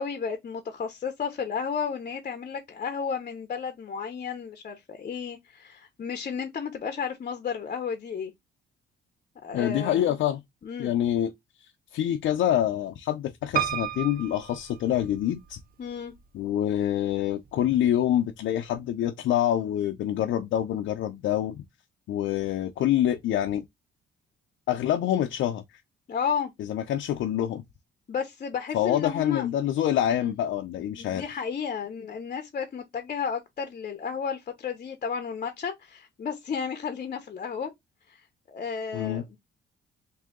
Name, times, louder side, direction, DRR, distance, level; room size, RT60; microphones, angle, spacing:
voice 1, 0.0-8.3 9.4-10.0 10.6-10.9 15.8-16.1 26.1-26.5 28.1-29.5 30.1-30.3 31.0-37.7 38.1-38.2 38.5-39.4, left 6 dB, 40° left, 0.8 m, -33 dB
voice 2, 9.5-10.4 10.8-11.3 11.9-15.6 16.3-21.6 22.1-23.6 24.7-25.6 26.6-27.6 28.7-31.3 38.9-39.2, left 11 dB, 75° left, 0.6 m, -26 dB
Piano, 13.6-15.5 16.2-16.9 17.2-17.3 17.5-17.6, right 10 dB, 45° right, 0.7 m, -32 dB
3.7 x 2.8 x 3.5 m
cardioid pair, 90°, 20 cm